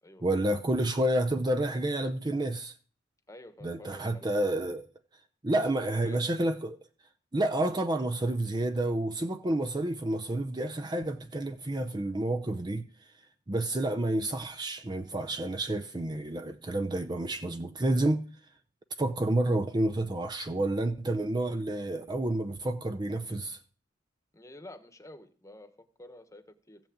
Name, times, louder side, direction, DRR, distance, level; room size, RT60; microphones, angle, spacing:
voice 1, 0.2-2.8 3.6-4.8 5.4-6.8 7.3-12.8 13.5-18.2 19.0-23.6, right 1 dB, 20° right, 0.6 m, -29 dB
voice 2, 3.3-4.3 5.5-6.2 24.3-26.8, left 1 dB, 15° left, 1.2 m, -50 dB
14.5 x 6.0 x 8.6 m
head